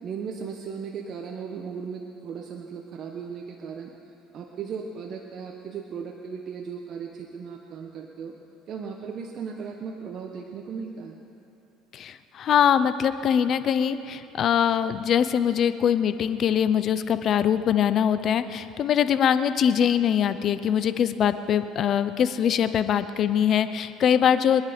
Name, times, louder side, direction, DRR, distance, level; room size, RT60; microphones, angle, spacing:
voice 1, 0.0-3.9 4.3-8.3 8.7-11.2, right 6 dB, 50° right, 2 dB, 1.1 m, -36 dB
voice 2, 11.9-24.6, left 8 dB, 50° left, 12 dB, 0.7 m, -23 dB
24.0 x 10.0 x 5.2 m, 3.0 s
supercardioid pair, 105°, 0 cm